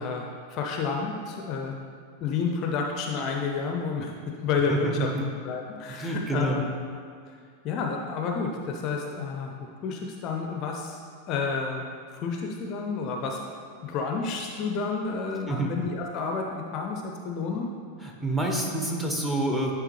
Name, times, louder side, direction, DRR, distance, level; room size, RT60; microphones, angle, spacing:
voice 1, 0.0-1.8 2.2-4.1 4.4-5.1 5.4-6.7 7.6-11.0 11.3-11.9 12.1-13.4 13.8-17.7, left 5 dB, 35° left, 2 dB, 0.5 m, -30 dB
voice 2, 4.7-5.2 5.9-6.6 15.5-15.7 18.0-19.7, right 1 dB, 10° right, 0 dB, 0.9 m, -28 dB
9.9 x 3.5 x 3.1 m, 2.1 s
figure-of-eight pair, 90°, 0 cm